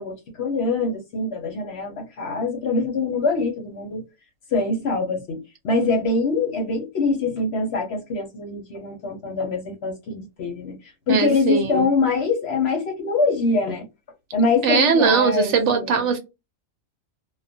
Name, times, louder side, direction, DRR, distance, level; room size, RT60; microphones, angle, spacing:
voice 1, 0.0-4.0 4.5-13.9 14.3-16.1, left 3 dB, 60° left, 0.8 m, -24 dB
voice 2, 11.1-11.9 14.6-16.2, right 5 dB, 65° right, 0.9 m, -20 dB
2.3 x 2.1 x 2.5 m
omnidirectional pair, 1.4 m